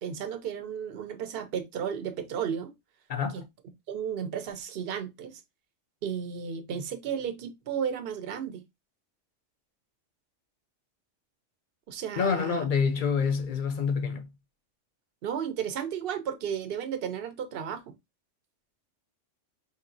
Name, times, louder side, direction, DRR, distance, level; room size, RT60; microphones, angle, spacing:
voice 1, 0.0-2.7 3.3-3.4 3.9-5.4 6.0-8.6 11.9-12.6 15.2-17.9, right 8 dB, 55° right, 0.8 m, -33 dB
voice 2, 3.1-3.4 12.2-14.3, left 6 dB, 50° left, 0.6 m, -27 dB
4.5 x 2.8 x 2.5 m
omnidirectional pair, 1.4 m